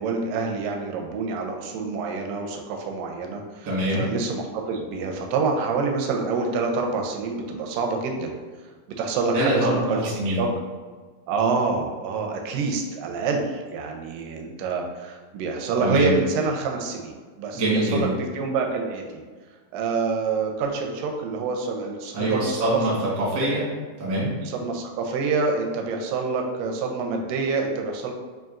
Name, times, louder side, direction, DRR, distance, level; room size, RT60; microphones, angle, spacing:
voice 1, 0.0-3.7 3.9-8.3 9.0-10.0 10.3-10.5 11.3-19.2 19.7-22.8 24.4-28.1, right 4 dB, 85° right, 2 dB, 2.2 m, -27 dB
voice 2, 3.6-4.1 9.3-10.5 15.8-16.1 17.5-18.1 22.1-23.7 24.0-24.3, right 1 dB, 65° right, -6 dB, 0.9 m, -24 dB
5.6 x 2.5 x 2.4 m, 1.4 s
omnidirectional pair, 3.9 m